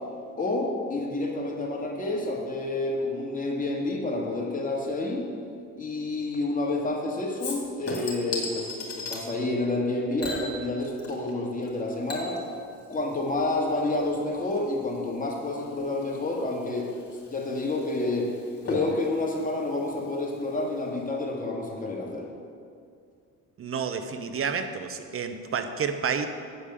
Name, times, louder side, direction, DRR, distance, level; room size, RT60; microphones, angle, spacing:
voice 1, 0.4-5.3 5.8-12.4 12.9-16.9 17.3-18.3 18.6-22.3, left 2 dB, 25° left, -1 dB, 1.9 m, -29 dB
Chink clink / Liquid, 7.4-9.2 10.2-11.3 11.6-20.6 21.0-21.1, left 2 dB, 50° left, 2.6 m, -38 dB
voice 2, 23.6-26.3, right 6 dB, 45° right, 8 dB, 0.8 m, -30 dB
9.3 x 5.0 x 6.8 m, 2.3 s
cardioid pair, 90°, 30 cm